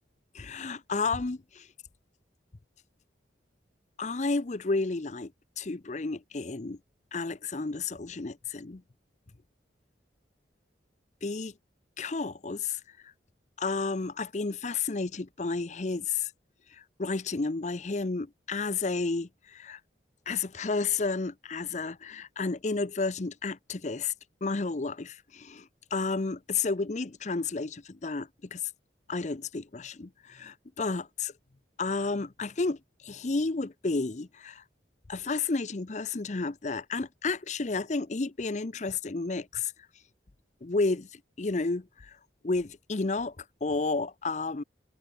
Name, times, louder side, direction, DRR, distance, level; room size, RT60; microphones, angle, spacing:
voice 1, 0.3-1.7 4.0-5.3 5.6-6.8 7.1-8.8 11.2-11.5 12.0-13.1 13.6-16.3 16.7-19.8 20.3-24.1 24.4-28.6 29.1-31.3 31.8-32.8 33.0-34.6 35.1-39.7 40.6-42.1 42.4-43.3 43.6-44.6, left 3 dB, 40° left, 0.6 m, -31 dB
head